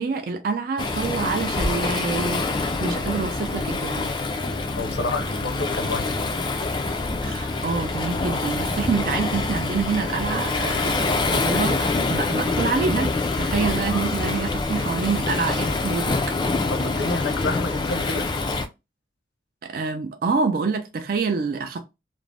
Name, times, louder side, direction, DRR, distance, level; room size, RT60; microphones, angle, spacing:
voice 1, 0.0-4.1 7.2-16.3 19.6-21.8, right 4 dB, 50° right, 0.4 m, -27 dB
Waves surf, 0.8-18.7, left 3 dB, 25° left, 0.3 m, -25 dB
voice 2, 4.8-6.2 16.7-18.3, left 2 dB, 65° left, 0.6 m, -29 dB
2.5 x 2.0 x 3.2 m
head